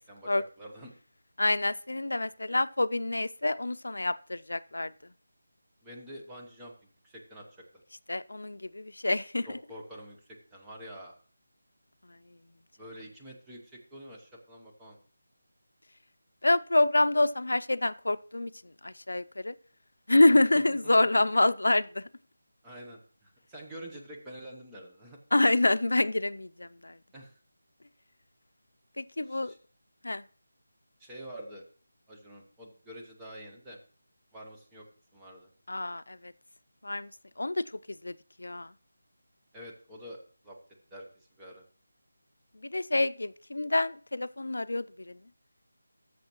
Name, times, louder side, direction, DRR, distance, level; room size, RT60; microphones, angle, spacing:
voice 1, 0.1-0.9 5.8-6.7 7.0-7.5 9.5-11.1 12.8-15.0 20.3-20.4 20.7-21.2 22.6-25.2 27.1-27.4 29.2-29.6 31.0-31.6 32.1-33.8 34.3-34.9 35.1-35.5 39.5-40.6 40.9-41.6, equal, 5° right, -2 dB, 0.9 m, -47 dB
voice 2, 1.4-4.9 8.1-9.6 16.4-18.5 18.8-19.5 20.1-22.1 25.3-27.0 29.0-29.5 30.0-30.2 35.7-36.3 36.8-37.1 37.4-38.1 38.4-38.7 42.6-45.2, left 2 dB, 90° left, 15 dB, 0.4 m, -27 dB
13.5 x 6.5 x 3.0 m, 0.43 s
figure-of-eight pair, 175°, 0 cm